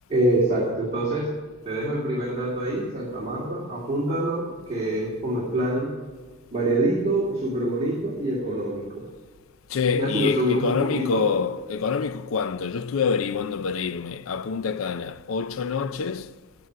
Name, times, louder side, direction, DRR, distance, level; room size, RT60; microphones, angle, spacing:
voice 1, 0.1-1.3 1.6-5.9 6.5-9.0 9.9-11.3, right 1 dB, 30° right, 2.5 m, -25 dB
voice 2, 9.7-16.3, left 6 dB, 75° left, 0.5 m, -26 dB
9.5 x 8.9 x 9.3 m
head